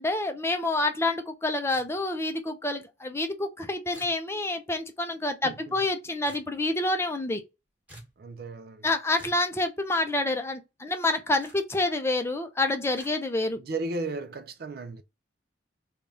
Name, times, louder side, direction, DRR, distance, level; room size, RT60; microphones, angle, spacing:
voice 1, 0.0-7.4 8.8-13.6, left 2 dB, 15° left, 0.5 m, -28 dB
sound 1, 1.7-2.2 3.9-4.2 6.2-6.5 7.9-8.2 9.2-9.5 11.4-11.6 12.9-13.1, right 1 dB, 10° right, 1.3 m, -49 dB
voice 2, 5.4-5.8 8.2-8.9 13.6-15.0, right 2 dB, 55° right, 0.5 m, -35 dB
3.4 x 2.3 x 3.9 m
head